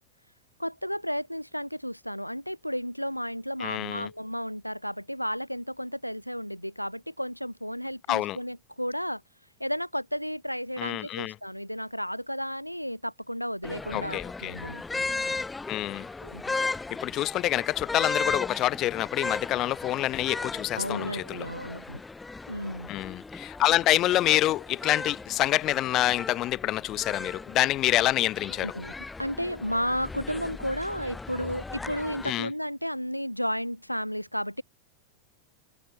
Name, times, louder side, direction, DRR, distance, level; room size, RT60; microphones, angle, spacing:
voice 1, 0.6-9.2 9.6-14.8 16.2-16.4 20.7-22.0 22.5-22.9 28.6-28.9 29.2-34.6, equal, 90° left, 2.4 m, -33 dB
voice 2, 3.6-4.1 8.1-8.4 10.8-11.3 13.9-14.6 15.7-16.1 16.9-21.4 22.9-28.7 32.2-32.5, left 15 dB, 35° left, 1.2 m, -27 dB
sound 1, 13.6-32.3, left 3 dB, 10° left, 0.7 m, -36 dB
figure-of-eight pair, 90°, 0 cm